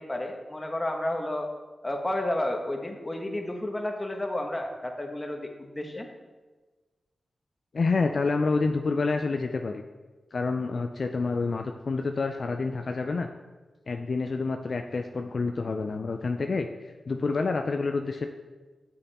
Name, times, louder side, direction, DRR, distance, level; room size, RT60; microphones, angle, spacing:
voice 1, 0.0-1.5 1.8-6.1, left 1 dB, 25° left, 3 dB, 1.2 m, -31 dB
voice 2, 7.7-9.8 10.3-13.3 13.9-18.3, left 4 dB, 65° left, 5 dB, 0.4 m, -28 dB
6.8 x 5.5 x 4.2 m, 1.3 s
cardioid pair, 40°, 0 cm